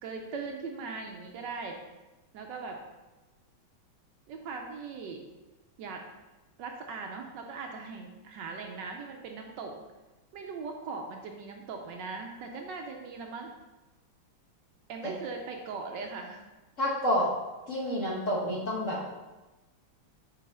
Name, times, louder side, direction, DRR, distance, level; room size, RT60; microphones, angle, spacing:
voice 1, 0.0-1.8 2.3-2.8 4.3-5.2 5.8-6.0 6.6-9.8 10.3-13.5 14.9-16.4, right 4 dB, 70° right, 3 dB, 1.1 m, -39 dB
voice 2, 16.8-17.3 17.7-19.0, equal, 50° left, -4 dB, 1.1 m, -28 dB
5.2 x 4.5 x 4.2 m, 1.1 s
omnidirectional pair, 2.2 m